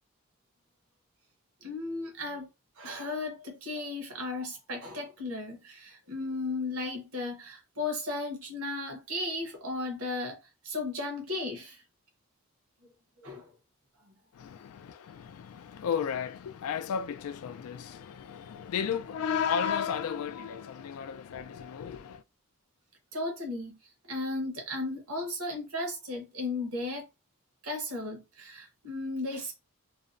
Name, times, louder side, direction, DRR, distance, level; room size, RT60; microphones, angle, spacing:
voice 1, 1.6-2.5 2.8-10.4 10.6-11.8 13.2-13.5 14.4-14.5 23.1-23.8 24.0-27.0 27.6-29.5, left 2 dB, 75° right, 1.0 m, -35 dB
voice 2, 14.3-22.2, left 7 dB, 75° left, 0.3 m, -33 dB
2.6 x 2.0 x 2.5 m
head